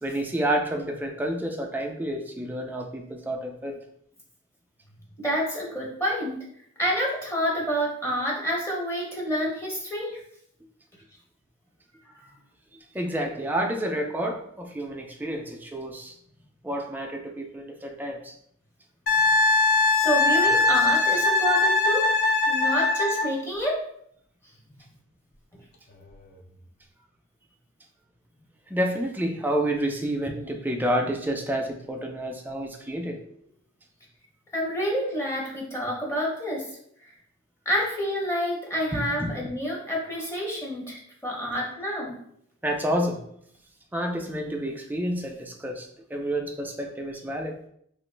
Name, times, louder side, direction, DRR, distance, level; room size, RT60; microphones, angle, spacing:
voice 1, 0.0-3.8 12.9-16.1 16.6-18.3 28.7-33.2 38.9-39.3 42.6-43.2 43.9-47.6, right 1 dB, 10° right, 2 dB, 0.3 m, -29 dB
voice 2, 5.2-6.4 6.8-10.2 19.9-22.2 22.5-23.8 34.5-36.6 37.0-37.1 37.7-42.2, equal, 15° left, -3 dB, 0.7 m, -28 dB
Wind instrument woodwind instrument, 19.1-23.3 26.0-26.1, left 3 dB, 50° left, 0.5 m, -21 dB
2.9 x 2.4 x 3.2 m, 0.69 s
head